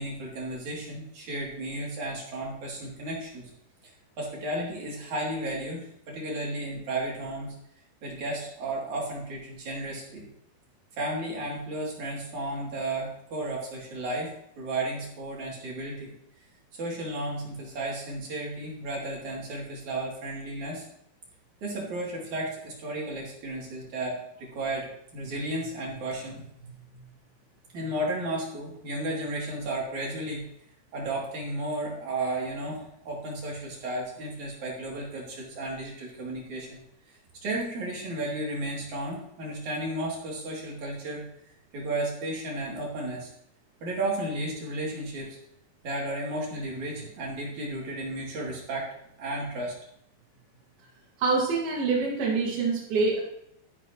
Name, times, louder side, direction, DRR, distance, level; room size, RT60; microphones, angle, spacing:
voice 1, 0.0-3.5 4.2-7.5 8.0-10.3 11.0-14.3 14.6-16.1 16.7-20.9 21.6-27.0 27.7-30.4 30.9-36.8 37.4-41.2 41.7-43.3 43.8-45.4 45.8-48.9 49.2-49.7, right 1 dB, 55° right, -3 dB, 4.1 m, -33 dB
voice 2, 51.2-53.2, right 4 dB, 90° right, -3 dB, 4.0 m, -25 dB
13.5 x 11.0 x 3.0 m, 0.75 s
omnidirectional pair, 4.2 m